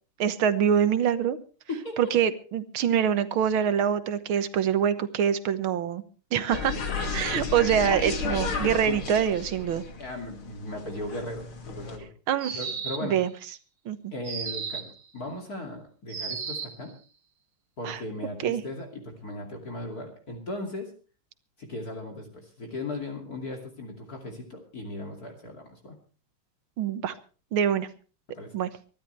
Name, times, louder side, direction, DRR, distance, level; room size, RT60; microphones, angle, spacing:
voice 1, 0.2-1.4 2.0-6.0 6.3-6.8 7.1-9.8 12.3-12.6 13.0-13.3 13.9-14.1 17.8-18.0 18.4-18.6 26.8-27.1 27.5-27.9 28.5-28.7, right 8 dB, 80° right, 12 dB, 1.9 m, -25 dB
voice 2, 1.7-2.0 7.6-7.7 8.8-9.0 10.0-12.1 12.5-13.2 14.1-16.9 17.8-20.9 21.6-25.9 28.3-28.5, left 2 dB, 45° left, 2 dB, 3.1 m, -37 dB
sound 1, 6.5-12.0, left 4 dB, 80° left, 3.2 m, -33 dB
sound 2, 12.4-13.2 14.2-15.0 16.1-16.8, right 5 dB, 55° right, 2.3 m, -34 dB
24.0 x 12.5 x 3.3 m, 0.38 s
omnidirectional pair, 2.2 m